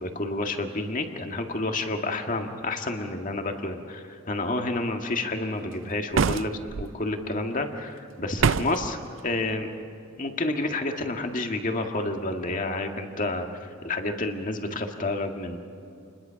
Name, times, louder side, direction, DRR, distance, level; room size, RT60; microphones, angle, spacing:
voice 1, 0.0-9.7 10.2-15.6, left 2 dB, 40° left, 4 dB, 1.9 m, -30 dB
sound 1, 6.1-6.9 8.4-8.9, right 5 dB, 70° right, 0.5 m, -24 dB
29.0 x 21.5 x 5.8 m, 2.6 s
head